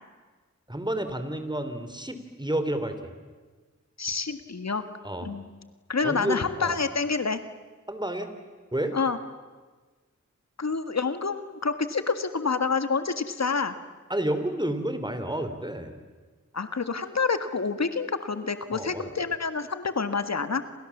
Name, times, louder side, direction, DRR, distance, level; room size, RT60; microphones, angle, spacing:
voice 1, 0.7-3.0 5.0-5.3 6.0-6.8 7.9-8.3 8.7-8.9 14.1-15.9 18.7-19.1, right 1 dB, 15° right, 9 dB, 3.6 m, -30 dB
voice 2, 4.0-4.8 5.2-5.5 5.9-7.4 8.9-9.2 10.6-13.8 16.5-20.6, left 4 dB, 60° left, 10 dB, 1.7 m, -28 dB
29.5 x 27.5 x 7.4 m, 1.4 s
cardioid pair, 55°, 30 cm